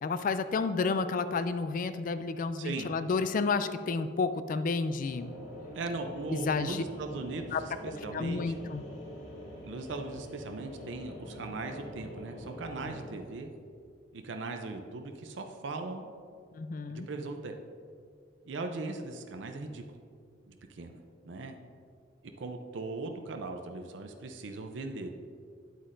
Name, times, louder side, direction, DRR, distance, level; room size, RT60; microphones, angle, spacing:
voice 1, 0.0-5.3 6.3-6.8 7.5-7.6 7.9-8.8 12.8-12.9 16.5-17.1, left 4 dB, 45° left, 12 dB, 0.3 m, -31 dB
voice 2, 2.6-2.9 5.7-8.6 9.6-13.5 14.1-16.1 16.9-17.5 18.4-19.8 20.5-21.0 21.2-21.6 22.4-25.1, right 3 dB, 70° right, 5 dB, 0.5 m, -39 dB
sound 1, 5.1-13.1, equal, 90° left, 2.0 m, -45 dB
9.2 x 8.1 x 2.6 m, 2.3 s
head